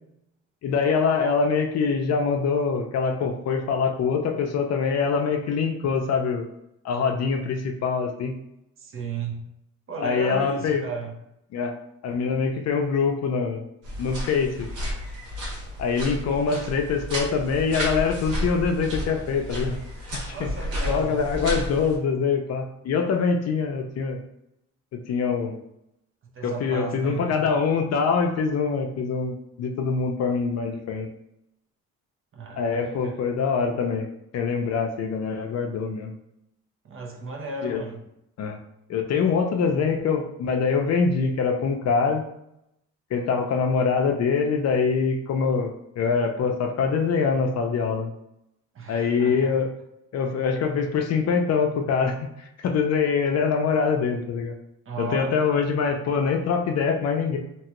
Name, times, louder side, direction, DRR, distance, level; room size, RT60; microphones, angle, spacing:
voice 1, 0.6-6.4 6.8-8.3 10.0-10.8 11.5-11.7 12.0-13.7 14.0-14.7 15.8-19.8 20.4-20.5 20.9-24.2 24.9-25.6 26.4-31.1 32.6-34.1 34.3-36.1 37.6-37.8 38.4-38.6 38.9-42.2 43.1-48.1 48.9-49.7 50.1-54.5 55.0-57.4, left 5 dB, 60° left, 4 dB, 0.5 m, -24 dB
voice 2, 8.8-9.4 9.9-11.2 20.3-21.2 26.3-27.4 32.3-33.2 36.8-38.0 48.7-49.6 54.9-55.3, right 4 dB, 45° right, 1 dB, 0.7 m, -35 dB
sound 1, 13.8-22.0, equal, 85° right, 1.4 m, -32 dB
2.9 x 2.3 x 2.9 m, 0.82 s
cardioid pair, 90°, 30 cm